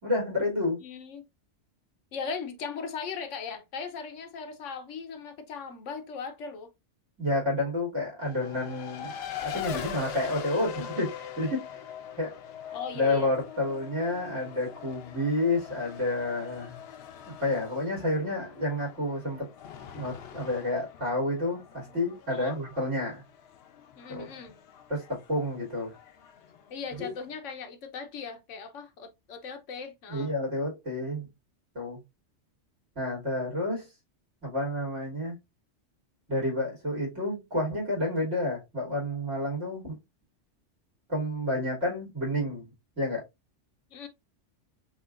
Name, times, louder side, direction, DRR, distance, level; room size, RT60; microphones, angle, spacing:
voice 1, 0.0-0.8 7.2-9.1 9.4-11.7 12.2-12.4 12.9-16.8 17.4-19.5 19.9-23.2 24.1-24.3 24.9-26.0 27.0-27.1 30.1-31.3 31.7-32.0 33.0-33.9 34.4-35.4 36.3-40.0 41.1-42.7 43.0-43.2, left 1 dB, 80° right, 2.9 m, -30 dB
voice 2, 0.8-1.3 2.1-6.7 12.7-13.3 22.3-22.6 24.0-24.6 26.7-30.3 43.9-44.1, left 5 dB, 85° left, 1.1 m, -38 dB
Race car auto racing, 8.2-27.3, left 9 dB, 65° left, 0.8 m, -43 dB
5.8 x 2.5 x 2.4 m
omnidirectional pair, 1.2 m